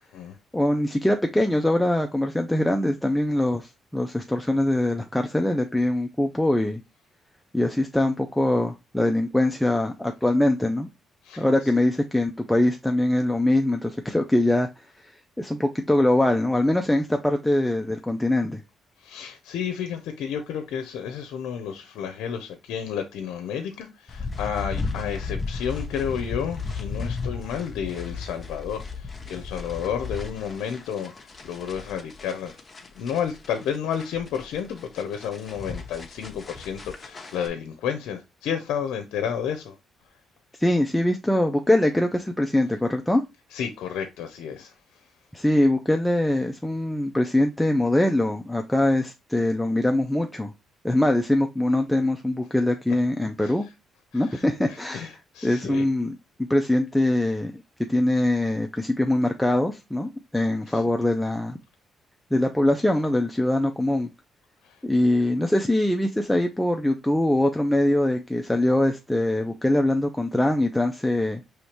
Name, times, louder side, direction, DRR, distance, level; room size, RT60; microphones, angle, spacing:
voice 1, 0.5-6.8 7.5-10.9 11.4-14.7 15.0-15.1 15.4-18.6 40.6-43.2 45.3-50.5 50.8-53.7 54.1-56.1 56.4-57.5 57.9-61.6 62.3-64.1 64.8-71.4, left 1 dB, 5° left, 0.5 m, -23 dB
voice 2, 19.0-32.6 33.0-39.7 43.5-44.7 53.4-53.5 54.1-55.8 60.7-60.8 64.6-64.8, left 8 dB, 85° left, 0.6 m, -31 dB
sound 1, 24.1-37.5, left 4 dB, 30° left, 0.9 m, -35 dB
4.9 x 3.1 x 2.9 m
cardioid pair, 90°, 0 cm